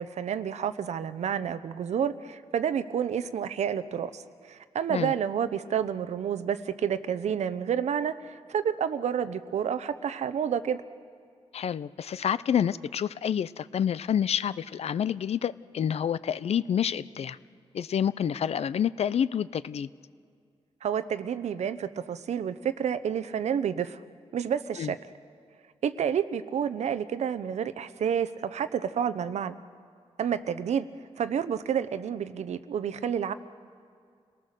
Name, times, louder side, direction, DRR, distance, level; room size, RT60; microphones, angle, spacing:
voice 1, 0.0-10.8 20.8-24.0 24.3-25.0 25.8-29.6 30.2-30.9 31.2-33.3, right 8 dB, 85° right, 13 dB, 0.8 m, -29 dB
voice 2, 11.5-17.4 17.7-19.9 24.8-24.9, left 8 dB, 65° left, 17 dB, 0.5 m, -28 dB
29.0 x 18.5 x 6.6 m, 2.2 s
wide cardioid pair, 105°, 11 cm